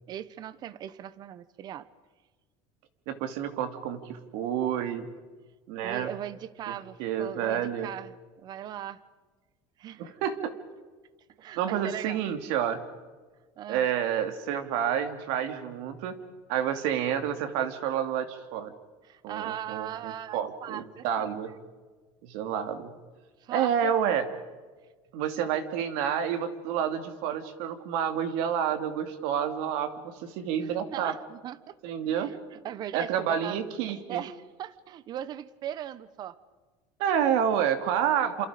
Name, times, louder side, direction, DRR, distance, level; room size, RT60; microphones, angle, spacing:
voice 1, 0.1-1.9 5.8-9.0 9.8-10.1 11.4-12.2 13.6-13.9 19.1-21.0 23.4-23.9 30.6-31.8 32.2-33.6 34.1-36.4, right 11 dB, 40° right, 17 dB, 1.1 m, -39 dB
voice 2, 3.1-5.1 5.7-6.1 6.7-6.8 7.0-7.9 10.0-10.5 11.6-12.8 13.7-16.2 16.5-18.7 19.2-21.5 22.2-22.9 23.5-24.3 25.1-31.1 31.8-32.3 32.9-34.2 37.0-38.5, right 8 dB, 75° right, 8 dB, 2.7 m, -29 dB
29.0 x 27.5 x 5.2 m, 1.4 s
cardioid pair, 140°, 10 cm